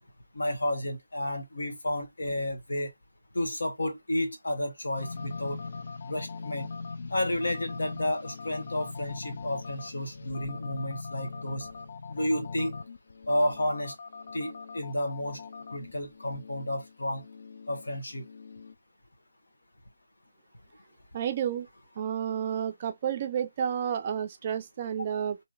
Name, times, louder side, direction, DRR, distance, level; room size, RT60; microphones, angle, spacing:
voice 1, 0.3-2.9 3.3-5.6 6.1-6.7 7.1-11.7 12.1-12.7 13.3-13.9 14.3-15.4 15.7-17.2 17.7-18.2, left 1 dB, 75° left, 1.2 m, -31 dB
sound 1, 5.0-18.7, left 4 dB, 60° left, 0.4 m, -41 dB
voice 2, 21.1-21.7 22.0-25.4, right 8 dB, 35° right, 0.4 m, -31 dB
2.9 x 2.7 x 2.4 m
figure-of-eight pair, 155°, 0 cm